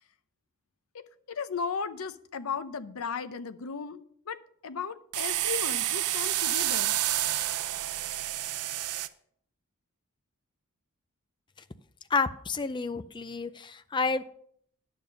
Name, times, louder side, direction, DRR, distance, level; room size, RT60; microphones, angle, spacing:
voice 1, 1.3-4.4 4.6-7.0, left 5 dB, 65° left, 0.6 m, -36 dB
sound 1, 5.1-9.1, right 13 dB, 80° right, 0.5 m, -29 dB
voice 2, 12.1-14.2, left 4 dB, 20° left, 0.4 m, -30 dB
10.5 x 6.9 x 5.2 m
head